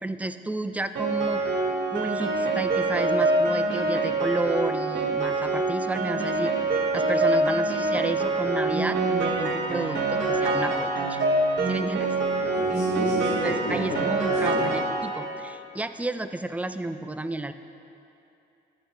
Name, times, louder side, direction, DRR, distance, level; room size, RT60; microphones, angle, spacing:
voice 1, 0.0-1.4 1.9-6.5 6.9-11.2 11.7-12.1 13.4-17.5, right 2 dB, 5° right, 10 dB, 0.3 m, -31 dB
Piano, 1.0-15.3, right 2 dB, 70° right, 2.2 m, -25 dB
voice 2, 12.3-14.7, left 1 dB, 80° left, -9 dB, 1.7 m, -32 dB
11.5 x 8.5 x 3.0 m, 2.8 s
cardioid pair, 90°, 20 cm